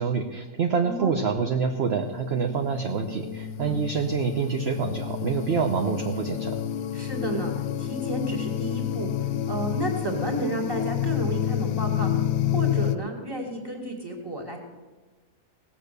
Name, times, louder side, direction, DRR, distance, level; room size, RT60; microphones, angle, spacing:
voice 1, 0.0-6.6, right 5 dB, 50° right, 5 dB, 1.0 m, -26 dB
voice 2, 0.8-1.3 3.5-3.8 6.9-9.1 9.5-14.6, right 1 dB, 15° right, 0 dB, 2.1 m, -32 dB
sound 1, 1.9-13.0, left 11 dB, 70° left, 1.0 m, -29 dB
18.0 x 7.2 x 6.7 m, 1.3 s
omnidirectional pair, 1.5 m